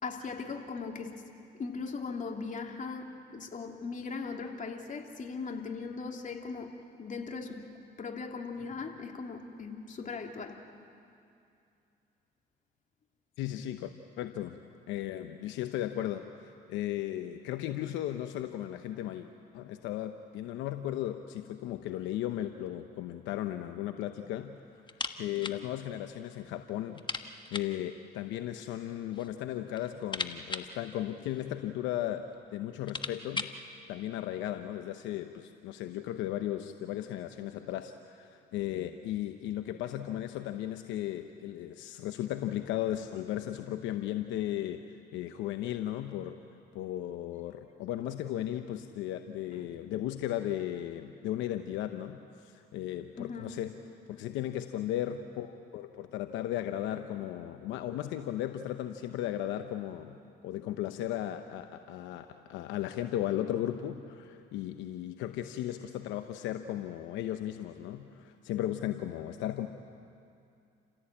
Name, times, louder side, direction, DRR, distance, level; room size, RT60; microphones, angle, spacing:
voice 1, 0.0-1.2 1.6-6.7 7.0-7.7 8.0-10.6 49.5-49.6 53.2-53.5, left 4 dB, 40° left, 2 dB, 3.0 m, -39 dB
voice 2, 13.4-13.9 14.2-14.6 14.9-19.3 19.5-24.6 25.2-32.2 32.5-33.5 33.9-44.8 45.1-46.4 46.7-53.7 54.1-60.2 60.4-69.7, left 12 dB, 80° left, 7 dB, 0.9 m, -36 dB
sound 1, 24.9-25.6 25.9-26.0 26.4-26.5 26.9-27.8 28.8-29.3 29.7-31.7 32.3-32.4 32.7-33.6, left 4 dB, 25° left, 1.4 m, -39 dB
29.0 x 16.0 x 8.7 m, 2.5 s
supercardioid pair, 70°, 19 cm